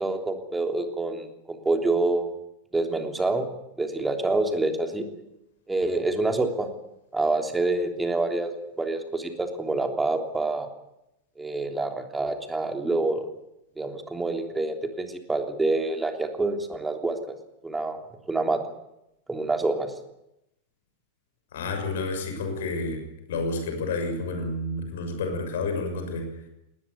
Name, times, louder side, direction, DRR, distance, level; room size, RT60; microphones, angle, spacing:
voice 1, 0.0-2.3 2.7-3.5 3.8-5.0 5.7-6.7 7.1-10.7 11.4-13.3 13.8-17.2 17.6-18.0 18.3-18.6 19.3-19.9, right 2 dB, 10° right, 5 dB, 3.3 m, -27 dB
voice 2, 21.5-23.0 23.3-26.2, left 3 dB, 60° left, 6 dB, 6.4 m, -30 dB
19.5 x 19.5 x 9.6 m, 0.86 s
figure-of-eight pair, 90°, 0 cm